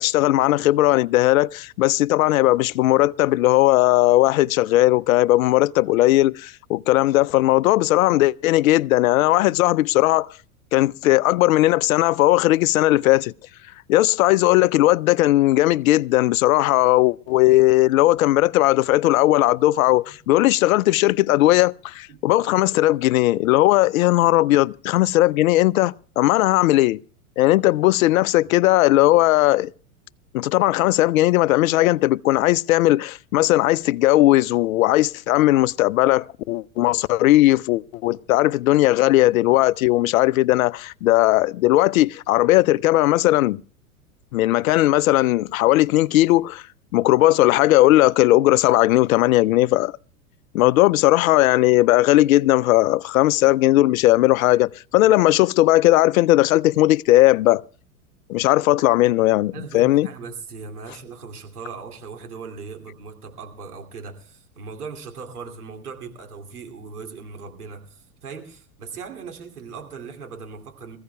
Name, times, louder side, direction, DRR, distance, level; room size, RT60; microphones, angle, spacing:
voice 1, 0.0-10.3 10.7-13.3 13.9-27.0 27.4-29.7 30.3-43.6 44.3-46.6 46.9-49.9 50.5-57.6 58.3-60.1, left 16 dB, 70° left, 0.6 m, -17 dB
voice 2, 20.1-20.4 22.1-22.2 59.5-71.0, right 5 dB, 80° right, 2.6 m, -38 dB
26.0 x 15.0 x 2.2 m
hypercardioid pair, 95°, 44 cm